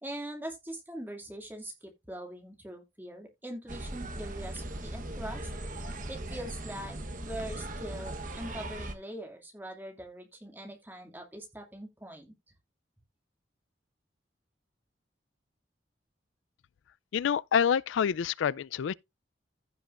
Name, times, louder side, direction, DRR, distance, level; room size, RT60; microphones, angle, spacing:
voice 1, 0.0-5.5 6.1-12.3, right 1 dB, 10° right, 2.1 m, -42 dB
sound 1, 3.7-8.9, right 1 dB, 45° right, 1.1 m, -39 dB
voice 2, 17.1-18.9, left 7 dB, 85° left, 0.3 m, -27 dB
15.5 x 5.2 x 2.5 m
head